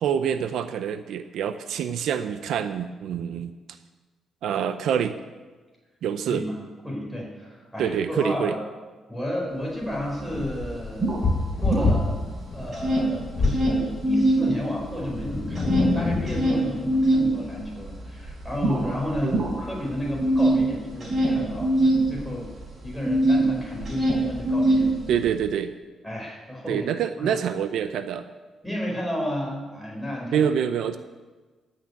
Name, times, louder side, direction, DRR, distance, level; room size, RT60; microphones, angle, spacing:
voice 1, 0.0-3.5 4.4-5.1 6.0-6.4 7.8-8.6 19.2-19.5 25.1-25.7 26.7-28.3 30.3-31.0, right 8 dB, 75° right, 10 dB, 0.6 m, -26 dB
voice 2, 6.8-8.6 9.1-12.1 12.5-22.5 22.8-25.2 26.0-26.9 27.2-27.4 28.6-30.4, equal, ahead, -3 dB, 4.8 m, -32 dB
sound 1, 10.0-10.1 10.3-12.3 12.6-14.5 14.8-23.5 23.8-25.3, right 1 dB, 30° right, 4.2 m, -23 dB
sound 2, 10.3-13.7 14.9-16.6, left 3 dB, 35° left, 1.3 m, -26 dB
14.5 x 6.6 x 9.7 m, 1.3 s
cardioid pair, 160°, 0 cm